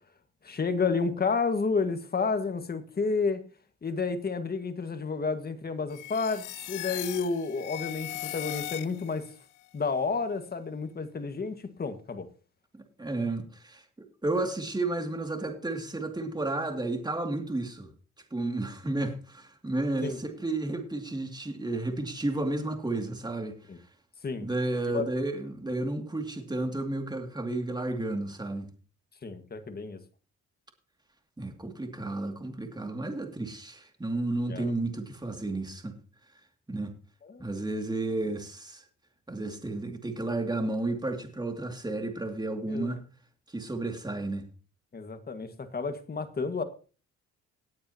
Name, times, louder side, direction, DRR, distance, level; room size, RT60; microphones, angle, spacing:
voice 1, 0.4-3.4 3.8-9.3 9.7-12.3 20.0-20.2 23.7-23.8 24.2-24.5 24.9-25.1 29.2-30.0 34.5-34.7 37.2-37.5 42.7-43.0 44.9-46.6, left 4 dB, 30° left, 1.7 m, -31 dB
sound 1, 5.9-9.3, left 16 dB, 90° left, 0.7 m, -38 dB
voice 2, 13.0-17.9 18.3-23.5 24.4-28.7 31.4-36.0 36.7-36.9 37.4-38.8 39.3-43.0 43.5-44.5, right 2 dB, 15° right, 2.4 m, -32 dB
18.0 x 8.8 x 2.9 m
cardioid pair, 90°, 30 cm